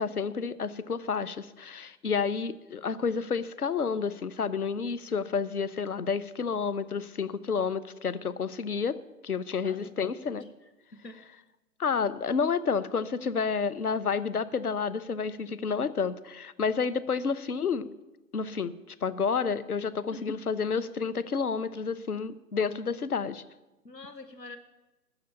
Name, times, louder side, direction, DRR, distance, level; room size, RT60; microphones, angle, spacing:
voice 1, 0.0-9.0 9.2-10.4 11.8-17.9 18.3-23.4, left 5 dB, 65° left, 17 dB, 0.8 m, -30 dB
voice 2, 9.6-11.2 20.1-20.3 23.8-24.6, left 2 dB, 90° left, 10 dB, 1.1 m, -47 dB
12.5 x 6.8 x 8.5 m, 1.1 s
figure-of-eight pair, 145°, 49 cm